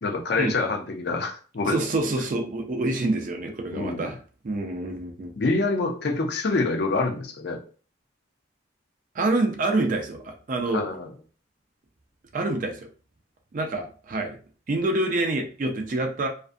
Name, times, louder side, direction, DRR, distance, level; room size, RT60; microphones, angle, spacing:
voice 1, 0.0-1.8 3.7-4.1 5.4-7.6 10.7-11.1, left 3 dB, 55° left, 2 dB, 0.5 m, -26 dB
voice 2, 1.6-4.2 4.4-5.3 9.1-10.9 12.3-12.9 13.5-14.4 14.7-16.3, right 2 dB, 45° right, 2 dB, 0.4 m, -27 dB
2.5 x 2.3 x 2.5 m, 0.39 s
head